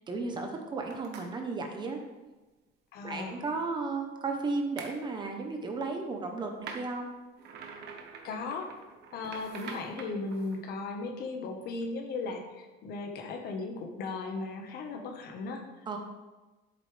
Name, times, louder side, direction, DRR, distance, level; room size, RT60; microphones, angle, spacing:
voice 1, 0.1-2.0 3.0-7.1 15.9-16.0, right 3 dB, 20° right, 3 dB, 0.9 m, -34 dB
sound 1, 0.9-1.3 4.8-5.0 6.6-10.6, right 5 dB, 55° right, 1.2 m, -45 dB
voice 2, 2.9-3.4 8.2-8.7 9.1-16.0, left 3 dB, 50° left, 4 dB, 1.4 m, -37 dB
10.5 x 8.3 x 3.4 m, 1.2 s
cardioid pair, 180°, 20 cm